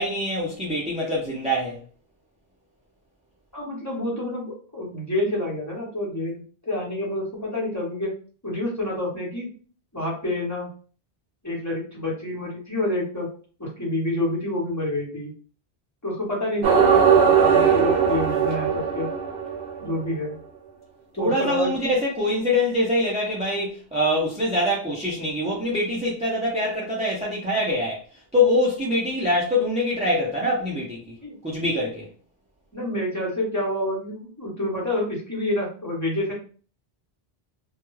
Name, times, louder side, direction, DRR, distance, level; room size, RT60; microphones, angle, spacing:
voice 1, 0.0-1.8 21.2-28.0 28.3-31.1 31.4-32.1, left 1 dB, 10° right, 0.3 m, -24 dB
voice 2, 3.5-8.1 8.4-9.5 9.9-10.7 11.4-13.3 13.6-15.3 16.0-19.1 19.8-20.3 21.1-21.9 31.2-31.3 32.7-36.3, left 1 dB, 15° left, 0.9 m, -28 dB
sound 1, 16.6-19.9, right 7 dB, 85° right, 0.9 m, -19 dB
2.3 x 2.2 x 3.1 m
omnidirectional pair, 1.1 m